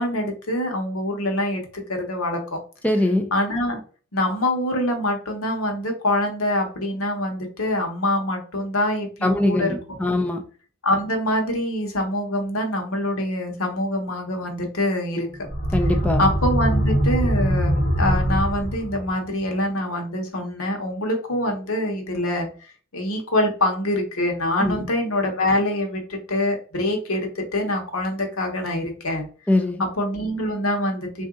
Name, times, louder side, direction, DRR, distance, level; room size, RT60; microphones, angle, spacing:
voice 1, 0.0-2.6 3.3-3.8 4.1-9.7 10.0-10.2 10.8-15.3 16.2-29.3 29.8-31.2, left 1 dB, 85° left, 3 dB, 1.0 m, -25 dB
voice 2, 2.8-3.3 9.2-10.4 15.7-16.2 24.6-24.9 29.5-29.8, left 1 dB, 5° left, 4 dB, 0.4 m, -22 dB
sound 1, 15.4-19.2, equal, 45° left, 1.0 m, -22 dB
3.7 x 2.6 x 3.6 m, 0.39 s
head